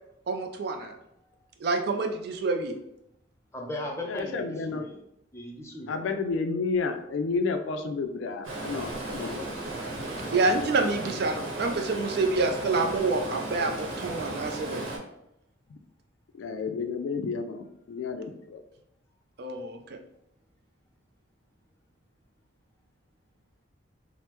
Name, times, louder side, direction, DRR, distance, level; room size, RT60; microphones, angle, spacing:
voice 1, 0.3-0.9 1.6-2.8 10.3-14.8 19.4-20.0, right 3 dB, 55° right, 5 dB, 0.3 m, -27 dB
voice 2, 3.5-5.0 5.3-6.1, left 1 dB, 15° left, -1 dB, 0.4 m, -37 dB
voice 3, 4.0-4.8 5.9-9.5 15.7-15.8 16.4-18.6, left 4 dB, 75° left, 6 dB, 0.3 m, -31 dB
Stream, 8.4-15.0, right 2 dB, 90° right, 0.9 m, -35 dB
3.3 x 2.0 x 2.9 m, 0.81 s
head